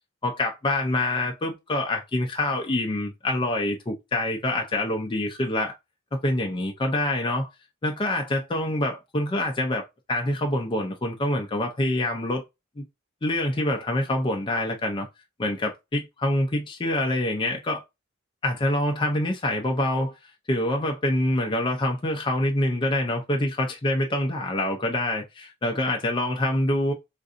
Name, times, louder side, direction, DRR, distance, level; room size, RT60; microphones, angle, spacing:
voice 1, 0.2-5.7 6.1-7.5 7.8-12.4 12.8-12.9 13.2-15.1 15.4-17.8 18.4-20.1 20.5-26.9, left 1 dB, 25° left, 0.5 m, -26 dB
3.8 x 2.5 x 2.4 m
head